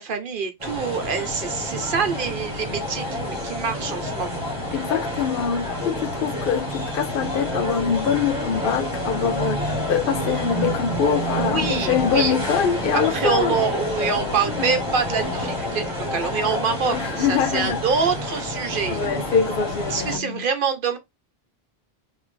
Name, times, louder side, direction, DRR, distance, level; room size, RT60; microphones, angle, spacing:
voice 1, 0.0-4.5 11.4-12.4 12.9-19.0 19.9-21.0, right 5 dB, 55° right, 0.9 m, -25 dB
sound 1, 0.6-20.2, left 1 dB, 30° right, 1.9 m, -28 dB
voice 2, 4.7-9.6 9.9-13.5 14.6-14.7 16.9-17.8 18.9-20.4, left 7 dB, 60° left, 0.7 m, -24 dB
3.4 x 2.8 x 3.3 m
omnidirectional pair, 1.1 m